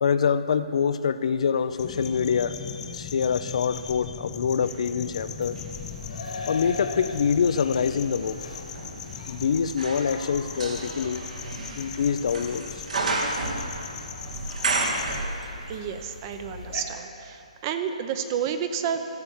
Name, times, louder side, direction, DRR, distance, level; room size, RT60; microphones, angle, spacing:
voice 1, 0.0-5.6 6.5-8.4 9.3-11.2 11.8-12.8, left 6 dB, 60° left, 12 dB, 0.5 m, -25 dB
sound 1, 1.7-3.9 4.4-15.8 16.1-16.2, right 2 dB, 70° right, 1.9 m, -33 dB
sound 2, 1.8-15.2, left 7 dB, 15° left, 0.6 m, -40 dB
sound 3, 5.0-16.8, left 3 dB, 80° left, 2.4 m, -42 dB
voice 2, 15.7-19.1, right 8 dB, 30° right, 8 dB, 0.7 m, -30 dB
14.5 x 7.0 x 7.1 m, 2.8 s
hypercardioid pair, 155°, 4 cm